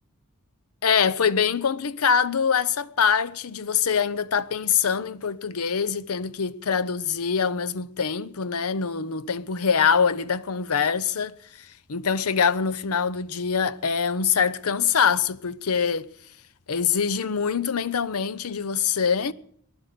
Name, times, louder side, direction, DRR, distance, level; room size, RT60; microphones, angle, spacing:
voice 1, 0.8-11.4 11.9-16.1 16.7-19.3, left 6 dB, 85° left, 0.7 m, -24 dB
19.0 x 11.5 x 6.7 m
head